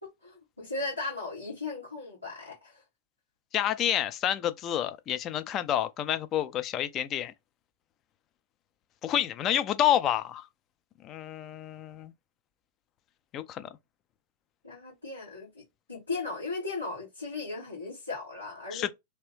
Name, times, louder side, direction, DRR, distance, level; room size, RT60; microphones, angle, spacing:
voice 1, 0.0-2.8 14.6-15.6 15.9-18.9, left 3 dB, 85° left, 1.7 m, -37 dB
voice 2, 3.5-7.3 9.0-10.5 11.0-12.1 13.3-13.7 18.7-18.9, left 11 dB, 30° left, 0.4 m, -29 dB
2.9 x 2.6 x 3.2 m
figure-of-eight pair, 90°, 0 cm